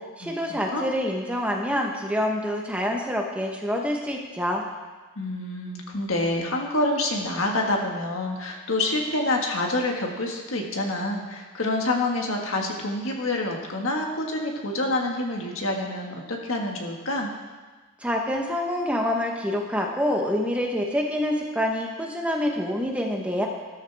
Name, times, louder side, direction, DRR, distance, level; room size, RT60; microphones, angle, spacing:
voice 1, 0.0-4.6 18.0-23.5, equal, 5° right, 0 dB, 1.0 m, -26 dB
voice 2, 5.2-17.3, left 2 dB, 65° left, 1 dB, 1.7 m, -27 dB
13.5 x 13.0 x 3.5 m, 1.3 s
head